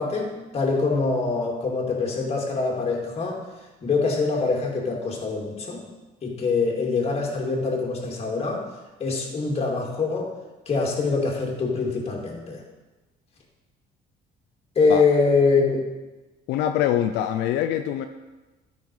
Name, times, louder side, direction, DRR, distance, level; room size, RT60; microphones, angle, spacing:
voice 1, 0.0-3.4 3.8-5.8 6.2-8.6 9.0-10.3 10.7-12.6 14.8-15.9, left 4 dB, 35° left, -1 dB, 2.4 m, -24 dB
voice 2, 16.5-18.1, left 11 dB, 90° left, 7 dB, 0.5 m, -24 dB
12.0 x 5.6 x 4.8 m, 1.2 s
cardioid pair, 110°, 17 cm